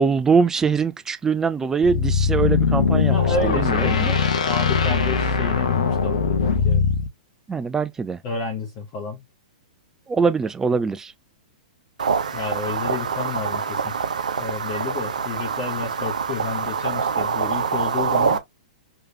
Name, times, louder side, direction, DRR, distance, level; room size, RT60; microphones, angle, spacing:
voice 1, 0.0-3.1 3.4-3.7 4.0-4.1 7.5-8.2 10.1-11.1, right 5 dB, 10° right, 0.5 m, -22 dB
sound 1, 1.8-7.1, left 5 dB, 65° left, 0.9 m, -21 dB
voice 2, 3.1-4.0 4.4-6.8 8.2-9.2 12.3-13.9 14.4-18.4, left 4 dB, 35° left, 1.1 m, -30 dB
sound 2, 12.0-18.4, right 6 dB, 70° right, 0.8 m, -25 dB
3.4 x 3.1 x 2.8 m
figure-of-eight pair, 110°, 4 cm